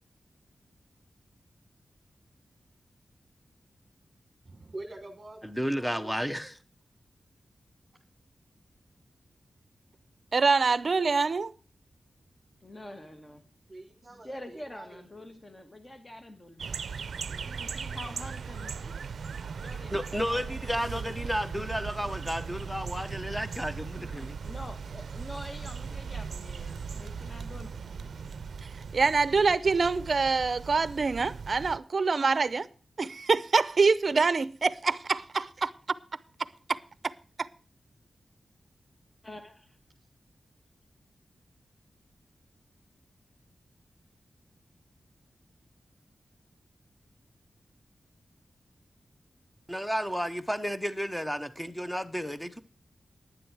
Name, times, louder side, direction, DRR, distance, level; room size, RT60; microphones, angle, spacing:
voice 1, 4.4-5.4 5.8-6.1 13.7-15.0, right 2 dB, 25° right, 1.5 m, -45 dB
voice 2, 5.4-6.6 19.9-24.4 49.7-52.6, equal, 5° left, 0.9 m, -32 dB
voice 3, 10.3-11.5 28.9-32.7 33.0-35.7, right 4 dB, 45° right, 0.6 m, -25 dB
voice 4, 12.6-13.4 14.2-16.8 17.3-18.9 19.6-19.9 20.3-21.0 24.4-27.7 28.8-28.9 39.2-39.8, left 1 dB, 20° left, 1.3 m, -45 dB
sound 1, 16.6-31.8, right 6 dB, 85° right, 0.5 m, -38 dB
sound 2, 20.6-29.2, left 4 dB, 60° left, 7.1 m, -60 dB
11.0 x 9.9 x 4.7 m
wide cardioid pair, 165°, 0 cm